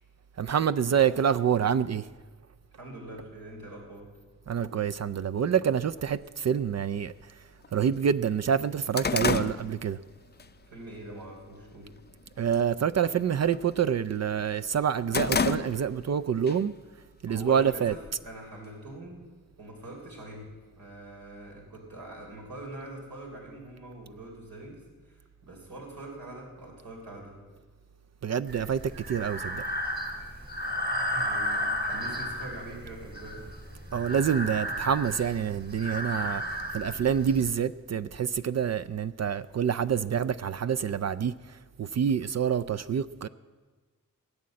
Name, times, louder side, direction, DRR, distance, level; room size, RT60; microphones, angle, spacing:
voice 1, 0.4-2.1 4.5-7.1 7.7-10.0 12.4-16.7 17.2-17.9 28.2-29.6 33.9-41.3 41.8-43.3, right 8 dB, 50° right, 0.4 m, -27 dB
voice 2, 2.8-4.1 10.6-11.9 17.3-19.2 19.6-20.5 20.8-27.3 30.6-30.7 31.1-33.4, right 1 dB, 80° right, 3.5 m, -44 dB
sound 1, 6.1-6.2 7.1-7.2 7.6-7.7 8.1-10.5 10.9-11.2 11.6-12.1 12.4-12.7 13.0-14.3 14.6-16.1 16.5-16.6 17.5-18.4, left 5 dB, 30° left, 0.5 m, -31 dB
Breathing, 28.5-37.5, equal, 30° right, 2.3 m, -33 dB
18.5 x 8.5 x 7.7 m
wide cardioid pair, 90°, 35 cm